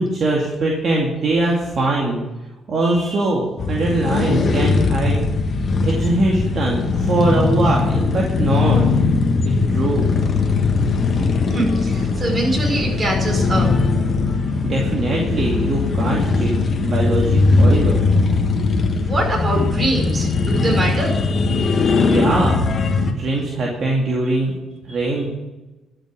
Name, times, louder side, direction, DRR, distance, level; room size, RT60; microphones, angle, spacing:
voice 1, 0.0-2.2 2.7-5.2 5.8-8.8 9.7-10.1 14.6-18.0 22.0-22.6 23.1-24.5 24.8-25.3, right 2 dB, 55° right, -2 dB, 2.5 m, -21 dB
voice 2, 2.8-3.2 11.5-13.7 19.0-21.2, right 1 dB, 35° right, 0 dB, 5.5 m, -23 dB
sound 1, 3.6-23.1, left 4 dB, 45° left, 1.5 m, -19 dB
12.5 x 6.8 x 8.7 m, 1.1 s
cardioid pair, 90°, 0 cm